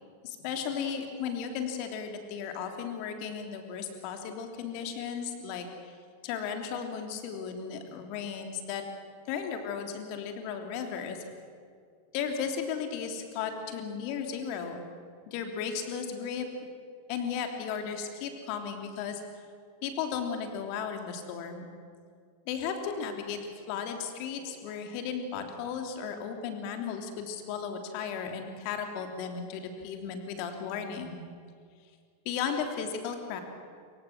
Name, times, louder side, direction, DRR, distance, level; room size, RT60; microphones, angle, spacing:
voice 1, 0.2-5.9 6.2-8.8 9.3-11.3 12.1-14.8 15.3-16.5 17.1-19.2 19.8-21.7 22.5-31.2 32.2-33.4, left 7 dB, 45° left, 5 dB, 3.2 m, -35 dB
27.0 x 24.0 x 6.2 m, 2.2 s
figure-of-eight pair, 90°, 0 cm